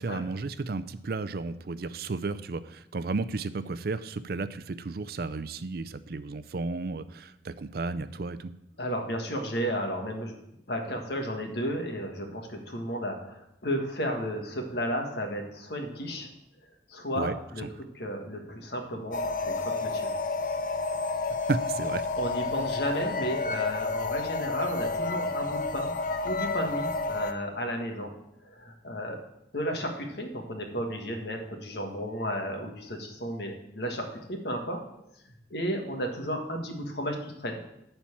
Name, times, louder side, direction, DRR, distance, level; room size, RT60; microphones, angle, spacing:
voice 1, 0.0-8.5 17.2-17.7 21.5-22.1, right 3 dB, 55° right, 13 dB, 0.5 m, -33 dB
voice 2, 8.8-10.4 10.7-16.3 16.9-17.6 17.9-20.1 22.2-25.9 26.2-28.1 28.4-29.2 29.5-34.8 35.5-37.6, equal, 65° left, 3 dB, 1.7 m, -33 dB
sound 1, 19.1-27.3, left 3 dB, 50° left, 0.6 m, -30 dB
11.5 x 4.5 x 7.2 m, 0.83 s
head